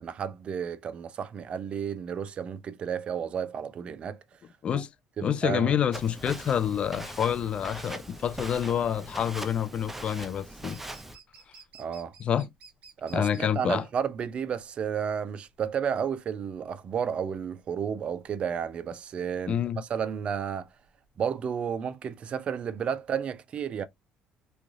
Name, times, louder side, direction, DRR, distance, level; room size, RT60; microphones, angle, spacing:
voice 1, 0.0-4.4 4.7-4.8 5.2-5.8 11.8-12.1 13.0-20.7 21.2-23.8, right 7 dB, 50° right, 0.5 m, -32 dB
voice 2, 5.2-10.8 12.2-12.5 13.1-13.8 19.5-19.8, left 9 dB, 45° left, 0.4 m, -27 dB
Walk footsteps, 5.9-11.1, right 1 dB, 10° right, 0.7 m, -41 dB
sound 1, 5.9-21.7, right 5 dB, 65° right, 1.0 m, -57 dB
3.2 x 2.3 x 2.6 m
supercardioid pair, 85°, 3 cm